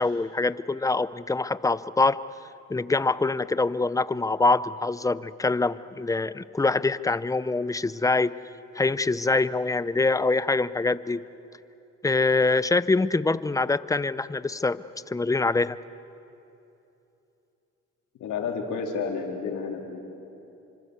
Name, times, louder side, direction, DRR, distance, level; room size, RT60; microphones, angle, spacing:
voice 1, 0.0-2.2 2.7-8.3 8.7-11.2 12.0-14.8 15.1-15.8, left 3 dB, 10° left, 16 dB, 0.6 m, -24 dB
voice 2, 18.2-20.0, left 5 dB, 80° left, 1 dB, 4.0 m, -31 dB
28.0 x 25.5 x 8.2 m, 2.9 s
cardioid pair, 90°, 30 cm